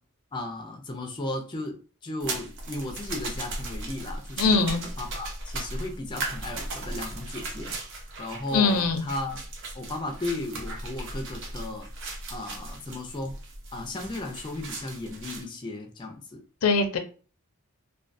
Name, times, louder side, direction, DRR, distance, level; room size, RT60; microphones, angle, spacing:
voice 1, 0.3-7.8 8.2-9.4 9.7-11.9 12.3-13.4 13.7-16.4, left 2 dB, 20° left, 0.4 m, -35 dB
sound 1, 2.2-15.4, right 2 dB, 60° right, 0.6 m, -37 dB
voice 2, 4.4-4.8 8.5-9.0 16.6-17.0, left 4 dB, 80° left, 0.5 m, -22 dB
2.2 x 2.2 x 2.5 m
head